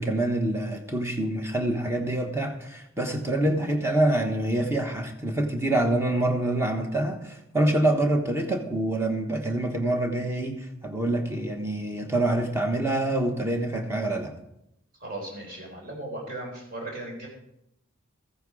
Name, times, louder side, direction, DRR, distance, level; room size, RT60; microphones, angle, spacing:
voice 1, 0.0-14.3, right 1 dB, 10° right, 4 dB, 1.3 m, -26 dB
voice 2, 15.0-17.3, right 1 dB, 45° right, 0 dB, 3.9 m, -37 dB
14.5 x 9.3 x 4.9 m, 0.82 s
head